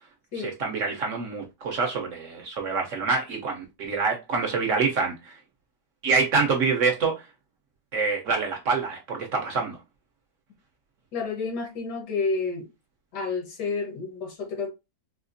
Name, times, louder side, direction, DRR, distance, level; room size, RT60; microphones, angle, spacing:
voice 1, 0.4-5.4 6.0-7.1 7.9-9.8, right 4 dB, 60° right, 0.9 m, -26 dB
voice 2, 11.1-12.7 13.1-14.7, left 4 dB, 80° left, 1.6 m, -30 dB
4.3 x 2.4 x 2.5 m
omnidirectional pair, 1.8 m